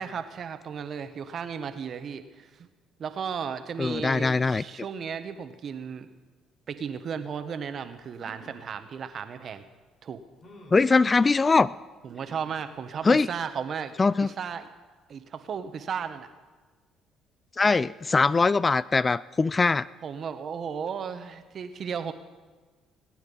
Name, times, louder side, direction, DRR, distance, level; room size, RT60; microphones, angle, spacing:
voice 1, 0.0-2.7 3.0-6.1 6.7-9.6 10.0-10.2 12.0-14.0 14.2-14.7 15.1-16.3 20.0-22.1, right 7 dB, 55° right, 10 dB, 1.2 m, -35 dB
voice 2, 3.8-4.6 10.7-11.7 13.0-13.3 14.0-14.3 17.6-19.9, left 4 dB, 30° left, 20 dB, 0.3 m, -22 dB
sound 1, 8.1-8.7 9.5-9.6 10.4-10.9 12.2-12.7 13.2-13.3 13.6-13.7, equal, 50° left, 3.8 m, -50 dB
18.5 x 9.2 x 5.5 m, 1.3 s
supercardioid pair, 70°, 0 cm